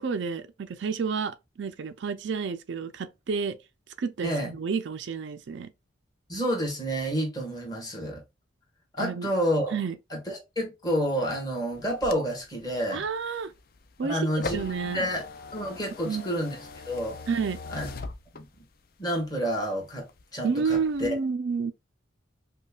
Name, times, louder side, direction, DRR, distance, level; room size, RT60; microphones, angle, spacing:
voice 1, 0.0-3.6 4.0-5.7 9.0-9.3 9.7-10.0 12.9-13.5 14.0-15.1 16.0-16.4 17.3-17.6 20.4-21.7, right 5 dB, 65° right, 0.4 m, -30 dB
voice 2, 4.2-4.5 6.3-8.2 8.9-9.8 10.1-13.0 14.0-15.2 15.5-16.6 16.9-17.2 17.7-17.9 18.3-18.4 19.0-21.1, equal, 20° left, 1.4 m, -29 dB
sound 1, 11.7-18.8 19.3-20.2 20.6-21.1, left 3 dB, 45° left, 0.4 m, -41 dB
5.2 x 2.2 x 2.3 m
head